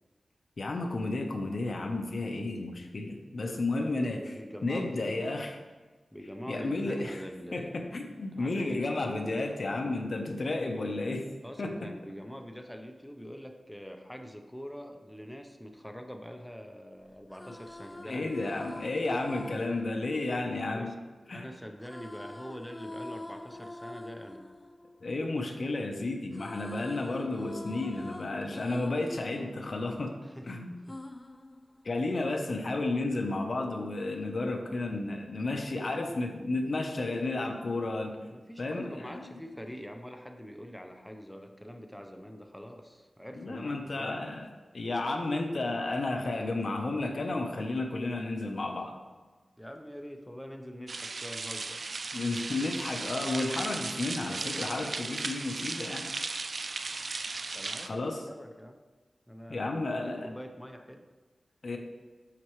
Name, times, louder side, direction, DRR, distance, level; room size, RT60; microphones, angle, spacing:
voice 1, 0.6-4.2 4.6-5.5 6.5-7.2 7.5-11.3 11.6-11.9 18.0-20.9 21.3-21.4 25.0-30.1 30.5-30.7 31.8-38.2 38.6-39.4 43.4-44.5 44.7-48.9 52.1-56.1 57.8-58.2 59.5-60.3 61.6-61.8, left 2 dB, 60° left, 4 dB, 0.9 m, -32 dB
voice 2, 3.4-5.3 6.1-7.9 8.3-9.3 11.4-18.3 20.7-21.0 21.2-24.5 30.2-31.0 35.7-36.2 38.2-44.2 49.6-51.9 57.5-58.8 59.3-61.0, equal, 5° left, 4 dB, 0.8 m, -44 dB
sound 1, 17.1-21.2 21.8-25.9 26.1-30.4 30.9-32.3, left 1 dB, 25° left, 0.4 m, -46 dB
sound 2, 50.9-57.9, right 3 dB, 60° right, 0.4 m, -36 dB
12.0 x 4.4 x 3.2 m, 1.3 s
wide cardioid pair, 70°, 0 cm